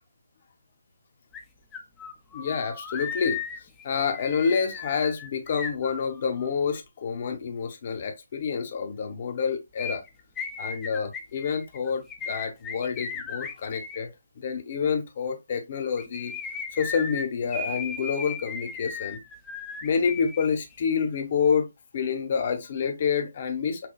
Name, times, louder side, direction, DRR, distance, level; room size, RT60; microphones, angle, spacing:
sound 1, 1.3-1.4 1.7-6.5 9.8-14.0 15.8-20.5 20.7-20.8, left 5 dB, 10° left, 0.6 m, -36 dB
voice 1, 2.3-3.4 3.8-10.0 10.6-14.1 14.4-16.3 16.8-19.2 19.8-21.7 21.9-23.9, left 6 dB, 40° left, 0.9 m, -28 dB
5.9 x 2.2 x 2.2 m
figure-of-eight pair, 145°, 0 cm